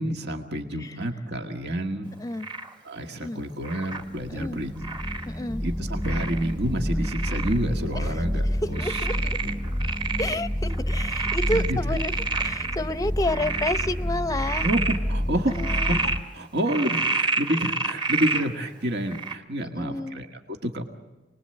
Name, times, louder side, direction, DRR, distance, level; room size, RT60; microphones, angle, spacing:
voice 1, 0.0-2.2 2.8-4.7 5.2-5.3 5.6-9.1 9.4-9.6 11.5-11.8 14.6-20.8, right 1 dB, 65° right, 4 dB, 1.8 m, -29 dB
Frog, 2.4-2.7 3.6-4.0 4.8-5.3 6.0-6.5 7.0-7.6 8.0-8.1 8.7-10.4 10.7-12.7 13.2-13.9 14.3-15.0 15.5-16.2 16.7-18.5 19.1-19.3, right 4 dB, 25° right, 1.7 m, -29 dB
sound 1, 4.1-16.2, equal, 5° right, 1.0 m, -29 dB
voice 2, 5.3-5.6 7.9-8.1 8.5-9.4 10.2-14.7 15.5-16.0 19.6-20.2, left 1 dB, 20° left, 12 dB, 0.7 m, -30 dB
29.0 x 20.5 x 7.9 m, 1.1 s
head